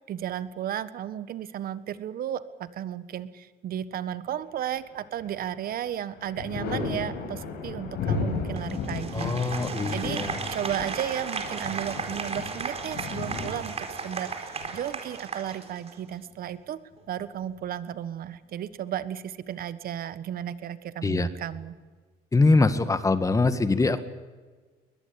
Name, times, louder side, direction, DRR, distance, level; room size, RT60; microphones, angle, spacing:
voice 1, 0.1-10.2 10.5-16.8 17.1-21.7, right 10 dB, 60° right, 15 dB, 1.5 m, -34 dB
Thunder, 4.7-5.5 5.9-15.4 16.9-17.8, left 4 dB, 70° left, 7.4 m, -35 dB
Applause, 8.6-16.1, right 5 dB, 35° right, 4.4 m, -35 dB
voice 2, 9.1-10.4 21.0-21.3 22.3-24.0, left 3 dB, 20° left, 11 dB, 1.9 m, -23 dB
21.5 x 21.0 x 8.7 m, 1.4 s
cardioid pair, 110°, 17 cm